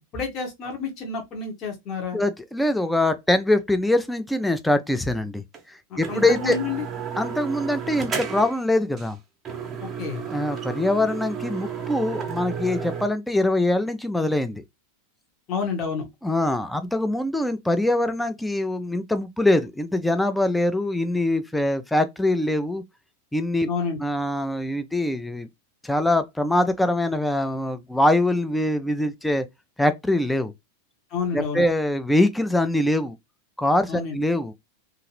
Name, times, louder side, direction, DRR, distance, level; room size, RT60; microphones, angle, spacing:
voice 1, 0.1-2.2 5.9-6.9 9.8-10.2 15.5-16.1 23.6-24.0 31.1-31.6 33.9-34.2, left 5 dB, 35° left, 1.0 m, -29 dB
voice 2, 2.1-6.6 7.2-9.2 10.3-14.6 16.2-22.8 23.3-23.7 24.0-25.5 25.8-29.5 29.8-30.5 31.3-33.2 33.6-34.5, left 1 dB, 5° left, 0.4 m, -23 dB
sound 1, 5.5-5.6 6.0-8.6 9.0-9.1 9.5-13.1, right 7 dB, 20° right, 0.8 m, -32 dB
2.7 x 2.5 x 3.0 m
figure-of-eight pair, 90°, 0 cm